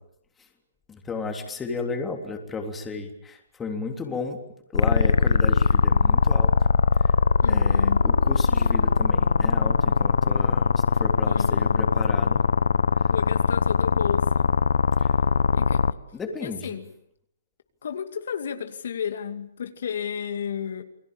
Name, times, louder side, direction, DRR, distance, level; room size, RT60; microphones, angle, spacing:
voice 1, 0.9-4.4 4.7-6.5 7.0-7.1 7.5-12.4 15.0-15.1 16.1-16.8, left 4 dB, 10° left, 4 dB, 3.5 m, -33 dB
sound 1, 4.7-15.9, left 5 dB, 90° left, 1.0 m, -20 dB
voice 2, 7.4-8.1 11.2-11.9 13.1-14.5 15.5-15.8 16.4-16.9 17.8-20.8, left 8 dB, 70° left, 7 dB, 2.5 m, -32 dB
29.0 x 20.5 x 8.9 m, 0.72 s
hypercardioid pair, 155°, 0 cm